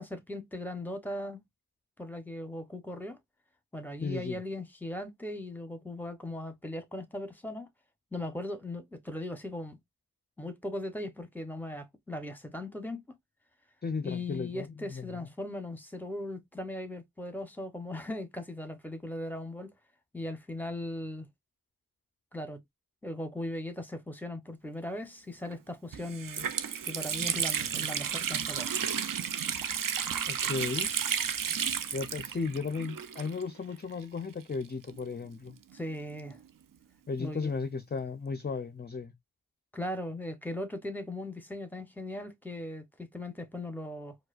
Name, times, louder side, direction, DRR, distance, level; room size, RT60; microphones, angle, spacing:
voice 1, 0.0-1.4 2.0-3.2 3.7-7.7 8.1-9.8 10.4-13.0 14.0-19.7 20.1-21.3 22.3-22.6 23.0-26.5 26.8-28.7 35.7-36.4 37.2-37.5 39.7-44.2, left 1 dB, 5° left, 0.8 m, -38 dB
voice 2, 4.0-4.4 13.8-15.3 30.3-30.9 31.9-35.6 37.1-39.1, left 4 dB, 25° left, 0.4 m, -35 dB
Water tap faucet, 25.4-25.5 25.9-33.7 33.9-34.0 34.8-36.4, right 8 dB, 55° right, 0.5 m, -33 dB
4.7 x 2.2 x 2.4 m
wide cardioid pair, 60°, 39 cm